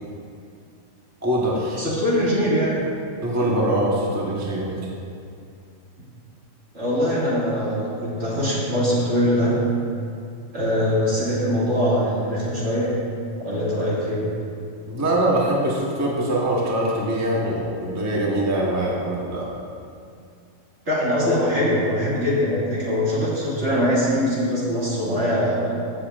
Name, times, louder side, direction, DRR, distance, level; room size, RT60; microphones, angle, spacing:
voice 1, 1.2-1.8 3.2-4.7 14.9-19.5, right 1 dB, 15° right, -4 dB, 1.0 m, -23 dB
voice 2, 1.8-2.8 6.7-9.6 10.5-12.9 13.4-14.3 20.9-25.8, equal, 60° right, -8 dB, 2.5 m, -22 dB
15.0 x 7.0 x 2.4 m, 2.4 s
omnidirectional pair, 1.3 m